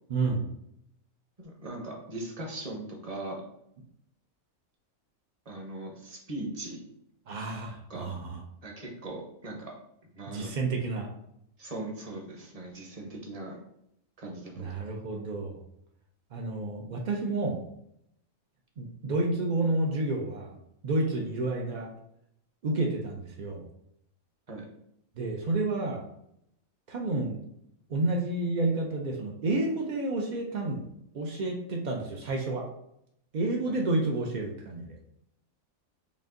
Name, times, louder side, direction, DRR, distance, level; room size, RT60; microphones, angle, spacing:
voice 1, 0.1-0.5 7.3-8.4 10.3-11.1 14.6-15.6 16.3-17.6 18.8-20.6 20.8-21.9 22.6-23.6 25.2-26.1 26.9-27.4 27.9-30.8 31.1-32.7 33.3-35.0, right 2 dB, 80° right, 0 dB, 0.4 m, -30 dB
voice 2, 1.4-3.4 5.5-6.8 7.9-8.1 8.6-9.7 10.1-10.5 11.6-13.6 14.2-14.7 24.5-24.6 33.7-33.8, right 2 dB, 35° right, -1 dB, 0.7 m, -39 dB
5.3 x 2.5 x 2.5 m, 0.76 s
omnidirectional pair, 1.5 m